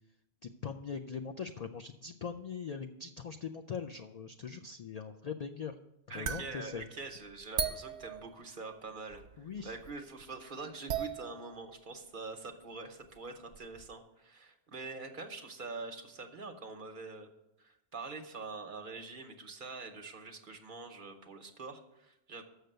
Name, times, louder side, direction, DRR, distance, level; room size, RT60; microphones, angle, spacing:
voice 1, 0.4-5.7 6.1-6.9 9.4-9.8, left 6 dB, 65° left, 6 dB, 0.4 m, -41 dB
voice 2, 6.1-17.3 17.6-22.4, right 3 dB, 50° right, 5 dB, 1.0 m, -45 dB
sound 1, 6.2-8.8 9.1-9.9 10.2-10.3 10.7-11.8 12.6-12.7 13.1-13.2 13.5-13.9, right 7 dB, 85° right, 1.0 m, -39 dB
6.7 x 6.5 x 7.8 m, 0.88 s
omnidirectional pair, 1.2 m